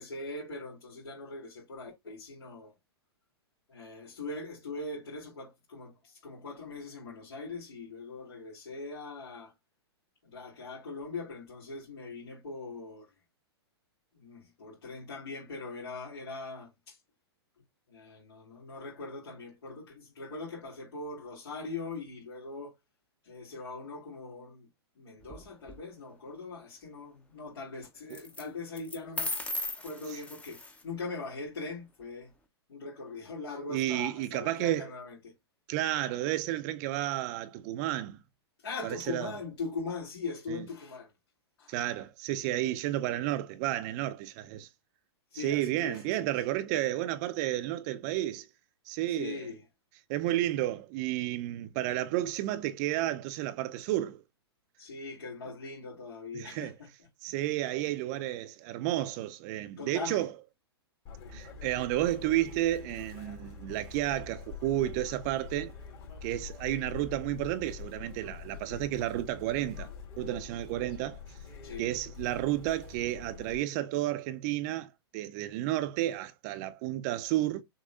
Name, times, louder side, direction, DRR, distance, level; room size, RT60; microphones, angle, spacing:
voice 1, 0.0-2.7 3.7-9.5 10.2-13.1 14.1-17.0 17.9-22.7 23.2-24.7 25.0-29.3 29.8-32.3 32.7-35.3 38.6-41.1 41.6-41.8 45.3-46.3 49.1-49.6 54.8-56.9 59.8-60.3 71.6-71.9, left 3 dB, 65° left, 2.8 m, -41 dB
sound 1, 25.2-25.8 28.1-28.4 28.8-30.8, left 2 dB, 10° left, 0.8 m, -37 dB
voice 2, 33.7-34.9 35.7-38.2 38.8-39.3 40.5-40.6 41.7-44.7 45.3-48.5 48.9-49.4 50.1-54.2 56.3-56.7 57.2-60.3 61.3-65.7 66.2-69.9 70.2-71.2 71.8-77.6, right 14 dB, 40° right, 0.5 m, -32 dB
Chirp tweet, 61.1-73.6, left 6 dB, 45° left, 2.6 m, -45 dB
6.5 x 3.0 x 2.4 m
hypercardioid pair, 115°, 14 cm